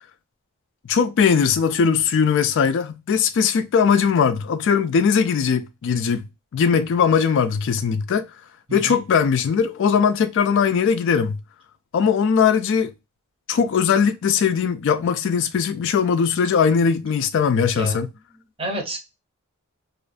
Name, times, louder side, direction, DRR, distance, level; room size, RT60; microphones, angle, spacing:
voice 1, 0.9-6.3 6.5-8.3 8.7-11.4 11.9-12.9 13.5-18.1, left 6 dB, 55° left, 0.3 m, -20 dB
voice 2, 8.7-9.0 17.7-18.0 18.6-19.0, right 1 dB, 25° right, 0.7 m, -29 dB
2.4 x 2.3 x 2.4 m
head